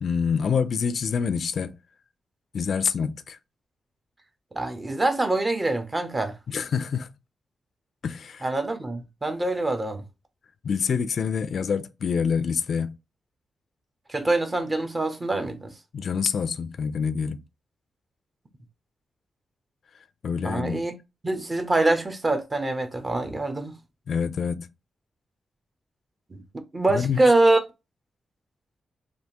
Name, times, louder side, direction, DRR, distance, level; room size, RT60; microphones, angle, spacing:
voice 1, 0.0-1.7 2.5-3.4 6.5-7.1 8.0-8.5 10.6-13.0 15.9-17.4 20.2-20.8 24.1-24.7 26.9-27.2, left 6 dB, 70° left, 0.3 m, -26 dB
voice 2, 4.5-6.4 8.4-10.0 14.1-15.7 20.4-20.9 21.2-23.8 26.3-26.4 26.7-27.6, right 2 dB, 30° right, 0.8 m, -24 dB
3.3 x 2.5 x 2.8 m
cardioid pair, 75°, 0 cm